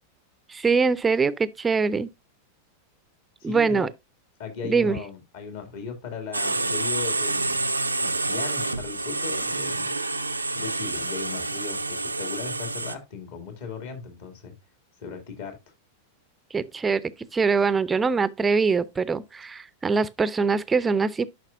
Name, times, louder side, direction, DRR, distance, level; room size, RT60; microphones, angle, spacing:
voice 1, 0.5-2.1 3.4-3.9 4.6-5.0 16.5-21.3, right 5 dB, 15° right, 0.5 m, -23 dB
voice 2, 3.4-3.9 4.4-7.7 8.0-9.9 10.5-14.5 15.0-15.6, left 5 dB, 55° left, 2.3 m, -37 dB
sound 1, 6.3-12.9, right 2 dB, 85° right, 0.5 m, -28 dB
10.5 x 5.8 x 2.5 m
figure-of-eight pair, 90°, 0 cm